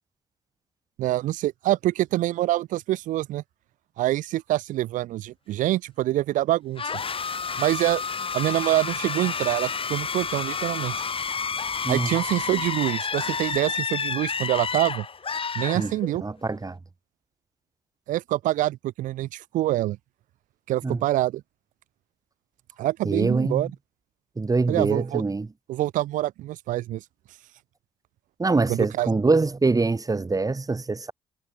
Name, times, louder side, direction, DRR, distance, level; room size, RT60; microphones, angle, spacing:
voice 1, 1.0-3.4 4.0-6.8 7.6-8.0 8.3-10.9 11.9-15.1 15.6-16.2 18.1-20.0 20.7-21.4 22.8-23.7 24.7-25.2 25.7-27.0 28.7-29.1, right 15 dB, 80° right, 4.0 m, -25 dB
sound 1, 6.8-16.3, left 5 dB, 45° left, 3.6 m, -30 dB
voice 2, 16.2-16.8 20.8-21.0 23.0-23.7 24.4-25.5 28.4-31.1, right 3 dB, 25° right, 2.4 m, -24 dB
hypercardioid pair, 50°, 13 cm